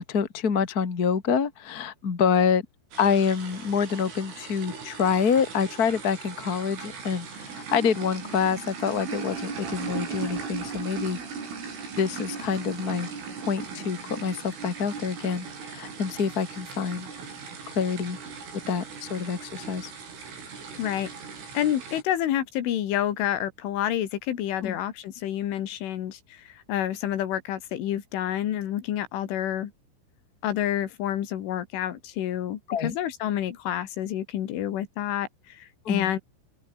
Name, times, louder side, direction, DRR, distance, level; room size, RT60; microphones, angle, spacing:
voice 1, 0.1-2.6 3.0-11.2 12.0-13.1 13.5-15.5 15.7-17.1 17.7-18.2 18.7-19.9 24.6-24.8 32.7-32.9 35.8-36.1, left 6 dB, 45° left, 1.2 m, -26 dB
sound 1, 2.9-22.0, right 5 dB, 80° right, 9.8 m, -38 dB
voice 2, 20.8-21.1 21.5-29.7 30.4-36.2, left 11 dB, 75° left, 4.6 m, -29 dB
open air
omnidirectional pair, 5.7 m